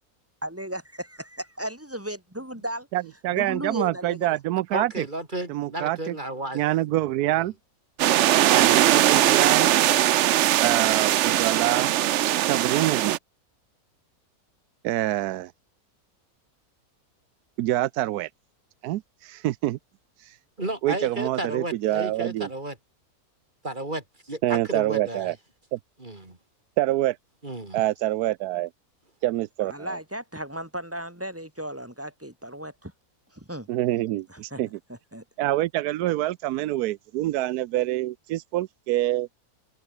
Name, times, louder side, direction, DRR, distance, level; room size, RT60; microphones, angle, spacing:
voice 1, 0.4-1.1 1.6-2.9 3.4-4.4 29.6-32.9 33.3-33.7 34.3-34.6 34.9-35.2, right 1 dB, 10° right, 2.6 m, -35 dB
voice 2, 2.9-5.0 5.5-6.1 6.5-7.5 8.4-9.7 10.6-11.9 12.4-13.2 14.8-15.5 17.6-18.3 18.8-19.8 20.2-20.4 20.8-22.5 24.4-25.3 25.7-25.8 26.8-27.2 27.7-28.7 29.2-30.0 33.7-34.8 35.4-39.3, right 15 dB, 85° right, 1.1 m, -26 dB
voice 3, 4.7-6.6 6.9-7.0 7.3-7.5 20.6-22.8 23.6-25.3 26.0-26.4 27.4-27.8, right 1 dB, 30° right, 3.6 m, -33 dB
sound 1, 8.0-13.2, right 13 dB, 65° right, 0.7 m, -20 dB
open air
omnidirectional pair, 1.6 m